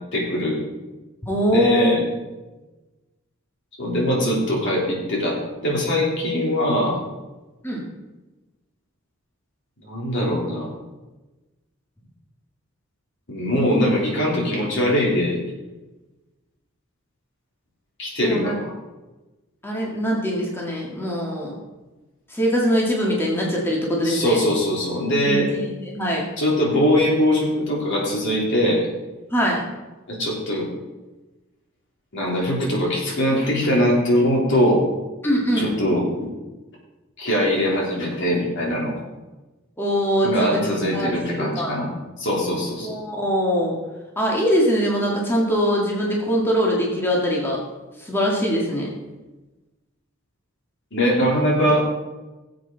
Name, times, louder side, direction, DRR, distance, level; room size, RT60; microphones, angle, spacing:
voice 1, 0.1-0.6 1.5-2.0 3.8-7.0 9.8-10.7 13.3-15.4 18.0-18.7 24.0-25.5 26.4-28.8 30.1-30.7 32.1-34.9 35.6-36.3 37.2-38.9 40.2-41.9 42.2-42.9 50.9-51.9, equal, 60° left, -3 dB, 3.5 m, -21 dB
voice 2, 1.2-1.9 7.6-7.8 18.2-18.5 19.6-21.5 22.3-24.4 25.2-26.2 29.3-29.6 35.2-35.7 39.8-40.6 40.9-41.8 42.8-43.8 44.2-47.6 48.0-48.9, equal, 10° left, -3 dB, 1.9 m, -22 dB
18.0 x 7.7 x 4.0 m, 1.1 s
head